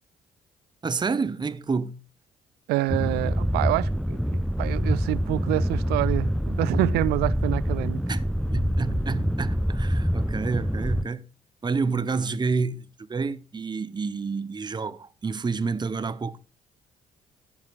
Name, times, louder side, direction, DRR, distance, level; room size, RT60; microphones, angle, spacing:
voice 1, 0.8-2.0 8.1-8.2 8.5-11.3 11.6-16.4, right 4 dB, 25° right, 0.8 m, -29 dB
voice 2, 2.7-8.0, right 18 dB, 65° right, 0.4 m, -27 dB
sound 1, 2.9-11.1, equal, ahead, 0.4 m, -26 dB
14.5 x 10.5 x 2.5 m
figure-of-eight pair, 45°, 18 cm